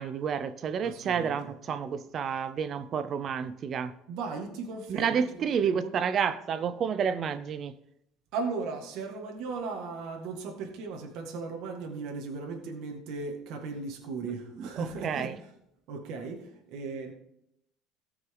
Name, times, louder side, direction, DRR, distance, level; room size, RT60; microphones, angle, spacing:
voice 1, 0.0-3.9 4.9-7.7 14.6-15.3, right 7 dB, 30° right, 0.6 m, -30 dB
voice 2, 0.8-1.5 4.1-5.9 8.3-15.3 15.9-17.1, right 4 dB, 55° right, 2.0 m, -37 dB
18.0 x 6.1 x 3.9 m
cardioid pair, 180°, 0 cm